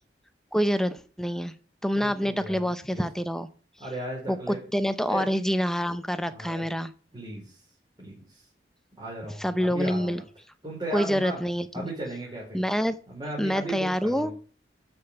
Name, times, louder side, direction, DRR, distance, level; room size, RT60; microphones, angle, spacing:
voice 1, 0.5-1.5 1.8-3.5 4.3-6.9 9.4-10.2 10.9-11.9 12.5-13.0 13.4-14.3, equal, 5° left, 11 dB, 0.8 m, -27 dB
voice 2, 1.9-3.0 3.8-4.6 5.1-5.2 6.3-6.6 7.1-7.6 8.0-8.4 8.9-10.2 10.6-11.4 11.7-12.6 13.1-14.3, right 1 dB, 25° right, -4 dB, 4.7 m, -36 dB
13.0 x 5.4 x 6.9 m, 0.40 s
head